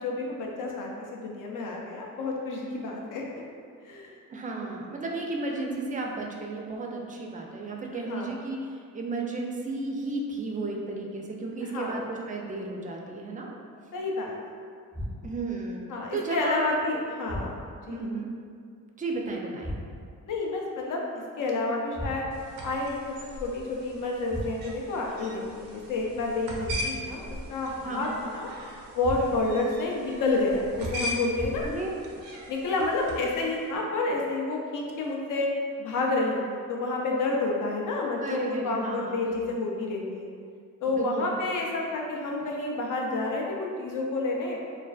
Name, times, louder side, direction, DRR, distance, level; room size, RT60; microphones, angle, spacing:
voice 1, 0.0-3.4 3.8-4.2 7.9-8.3 11.6-12.0 13.9-14.3 15.9-17.5 17.9-18.1 20.3-21.0 21.4-22.3 22.6-28.5 28.9-31.6 32.5-35.5 35.8-40.3 40.8-44.6, left 2 dB, 65° left, -1 dB, 0.5 m, -29 dB
voice 2, 4.3-13.5 15.2-15.8 16.1-16.6 16.9-17.0 17.9-18.3 19.0-19.7 27.8-28.1 31.6-31.9 38.2-39.6 40.8-41.4, right 3 dB, 25° right, 0 dB, 0.3 m, -33 dB
sound 1, 14.9-15.6 17.3-17.9 19.6-20.2 21.9-22.6 24.3-24.9 26.6-27.3 29.0-29.6 31.3-32.0, equal, 20° left, 0.6 m, -37 dB
sound 2, 22.3-33.6, equal, 90° right, 0.5 m, -40 dB
2.4 x 2.3 x 2.3 m, 2.2 s
cardioid pair, 70°, 34 cm